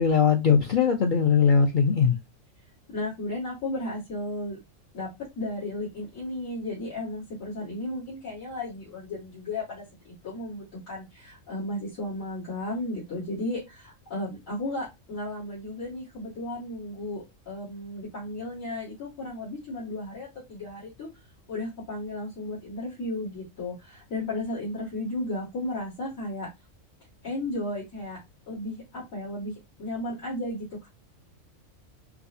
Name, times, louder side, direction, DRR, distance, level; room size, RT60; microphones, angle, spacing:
voice 1, 0.0-2.2, left 6 dB, 65° left, 0.4 m, -20 dB
voice 2, 2.9-4.6 4.9-5.1 5.4-21.1 21.5-26.5 27.2-28.2 28.5-29.5 29.8-30.9, left 1 dB, 85° left, 2.1 m, -34 dB
4.7 x 2.1 x 2.6 m
omnidirectional pair, 1.4 m